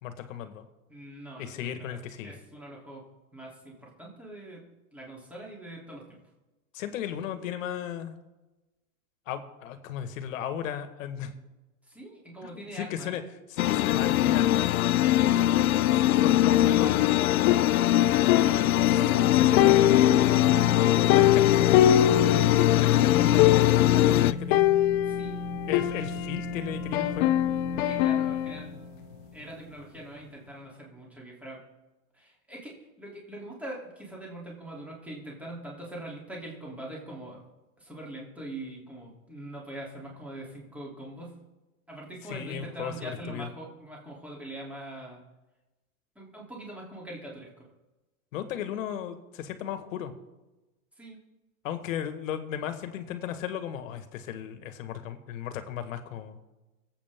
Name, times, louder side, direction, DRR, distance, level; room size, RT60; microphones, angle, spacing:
voice 1, 0.0-0.7 1.4-2.4 6.7-8.2 9.3-11.3 12.4-13.2 13.5-14.7 16.2-17.0 19.3-20.7 21.1-22.5 22.7-24.7 25.7-27.4 42.3-43.5 48.3-50.1 51.6-56.4, left 9 dB, 65° left, 9 dB, 1.8 m, -35 dB
voice 2, 0.9-2.0 2.2-3.0 3.3-6.2 11.8-13.2 15.1-15.3 15.7-17.5 18.4-19.3 25.1-25.5 27.8-28.8 29.3-31.6 32.1-37.4 37.8-41.4 41.9-45.2 46.1-47.7 51.0-51.2, right 1 dB, 5° right, -4 dB, 3.2 m, -43 dB
sound 1, 13.6-24.3, left 14 dB, 80° left, 0.5 m, -22 dB
sound 2, 17.5-19.2 19.6-22.9 23.1-23.2 23.4-24.0 24.5-26.5 26.9-28.6, left 12 dB, 35° left, 0.5 m, -24 dB
sound 3, 18.4-29.9, left 2 dB, 60° right, 3.7 m, -36 dB
23.0 x 8.4 x 3.7 m, 1.1 s
hypercardioid pair, 135°, 42 cm